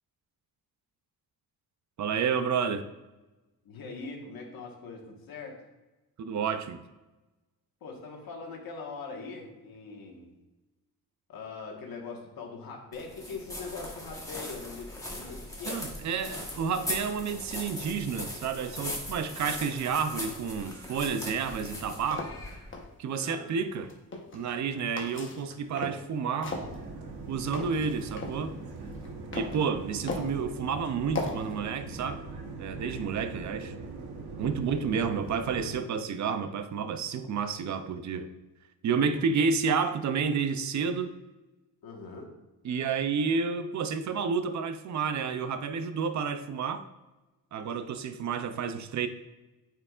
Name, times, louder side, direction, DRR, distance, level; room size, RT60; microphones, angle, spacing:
voice 1, 2.0-2.8 6.2-6.8 15.7-22.3 23.0-23.9 24.3-26.6 27.3-28.6 29.3-32.2 32.6-33.7 34.4-38.3 38.8-41.1 42.6-46.8 47.5-49.1, right 6 dB, 50° right, 11 dB, 0.5 m, -30 dB
voice 2, 3.6-5.6 7.8-10.3 11.3-15.8 23.2-23.5 30.2-30.3 34.6-34.7 38.9-39.2 41.8-42.3, left 4 dB, 65° left, 0 dB, 1.5 m, -42 dB
sound 1, 12.9-22.8, left 1 dB, 10° left, 1.3 m, -39 dB
sound 2, 21.8-22.8 23.7-24.6 25.0-26.1 26.4-28.4 28.8-29.6 30.1-30.4 31.1-31.5, left 3 dB, 30° left, 1.1 m, -37 dB
sound 3, 26.4-35.8, right 3 dB, 80° right, 1.1 m, -41 dB
8.6 x 4.6 x 2.4 m, 1.1 s
cardioid pair, 120°, 38 cm